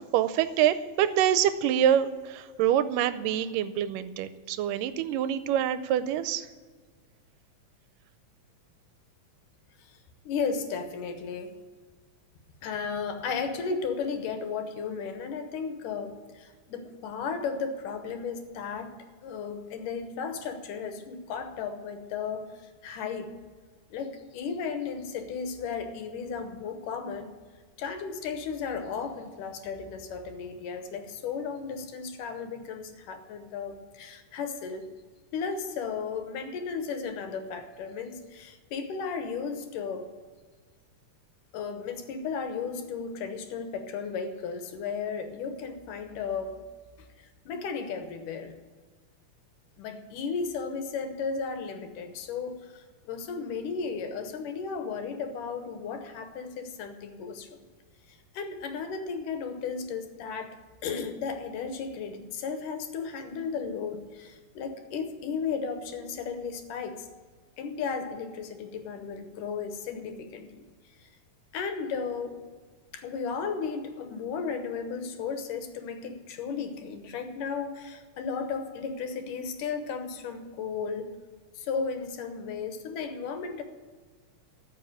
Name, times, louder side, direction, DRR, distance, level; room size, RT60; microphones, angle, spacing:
voice 1, 0.0-6.5, right 10 dB, 85° right, 13 dB, 2.2 m, -26 dB
voice 2, 10.3-11.6 12.6-23.3 23.9-27.4 27.8-34.9 35.3-40.1 41.5-46.7 47.2-48.6 49.8-57.6 58.1-60.6 60.8-67.1 67.6-70.7 71.0-71.1 71.5-72.4 72.9-81.1 81.6-83.6, left 5 dB, 75° left, 7 dB, 2.6 m, -35 dB
14.0 x 5.4 x 9.2 m, 1.5 s
omnidirectional pair, 3.8 m